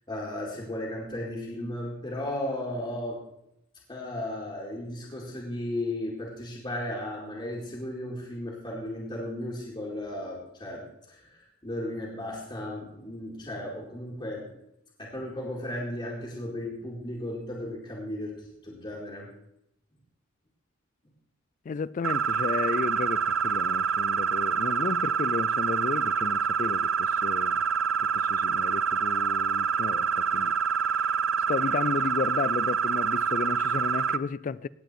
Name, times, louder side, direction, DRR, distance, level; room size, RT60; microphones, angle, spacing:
voice 1, 0.1-3.2 3.9-14.5 15.0-19.3, left 1 dB, 25° left, 2.4 m, -35 dB
voice 2, 21.7-27.6 28.0-30.6 30.8-31.2 31.5-34.7, left 5 dB, 40° left, 0.3 m, -33 dB
sound 1, 22.0-34.2, right 6 dB, 80° right, 0.6 m, -26 dB
18.0 x 8.0 x 4.4 m
head